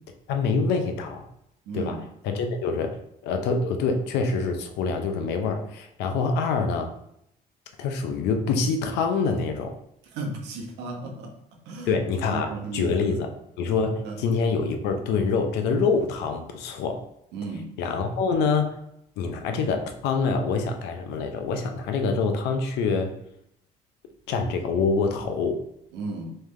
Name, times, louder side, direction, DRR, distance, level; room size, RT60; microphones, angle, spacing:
voice 1, 0.3-1.3 1.7-6.9 7.8-9.8 11.9-13.3 13.6-17.0 17.8-18.8 19.2-23.1 24.3-25.6, left 4 dB, 85° left, 5 dB, 0.6 m, -26 dB
voice 2, 1.7-2.0 10.1-11.3 11.7-11.9 12.2-12.9 14.0-14.2 17.3-17.7 25.9-26.4, right 3 dB, 90° right, 2 dB, 0.9 m, -34 dB
3.6 x 3.2 x 3.2 m, 0.77 s
cardioid pair, 110°, 17 cm